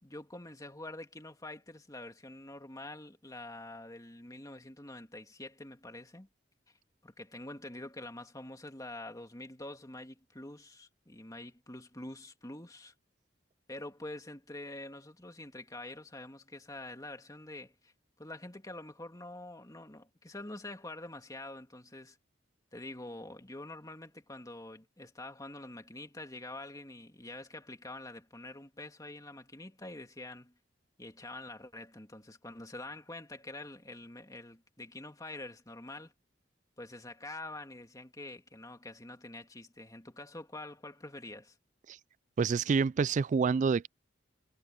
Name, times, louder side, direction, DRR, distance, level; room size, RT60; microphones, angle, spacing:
voice 1, 0.0-6.3 7.0-12.9 13.7-17.9 18.2-22.2 22.7-30.5 31.0-36.1 36.8-41.6, left 2 dB, 20° left, 2.5 m, -46 dB
voice 2, 42.4-43.9, right 5 dB, 40° right, 0.3 m, -27 dB
head